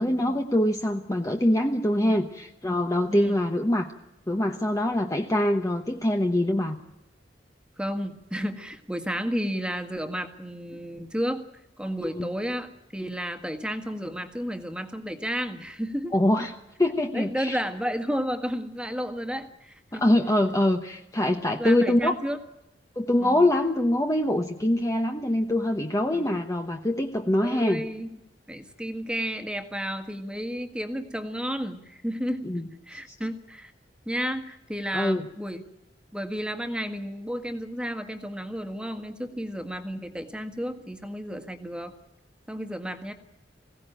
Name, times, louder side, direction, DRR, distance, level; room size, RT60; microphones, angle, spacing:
voice 1, 0.0-3.9 4.3-6.8 12.0-12.3 16.1-16.5 16.8-17.6 19.9-22.1 23.0-27.8 32.4-32.7 33.1-33.2 34.9-35.2, left 1 dB, 20° left, 4 dB, 1.0 m, -24 dB
voice 2, 7.8-11.5 11.8-16.1 17.1-20.0 21.6-22.4 23.2-23.5 26.1-26.4 27.4-28.2 28.5-32.5 32.9-33.7 34.0-35.6 36.1-41.9 42.5-43.1, equal, 5° right, 7 dB, 1.7 m, -32 dB
21.5 x 17.0 x 9.1 m, 0.89 s
head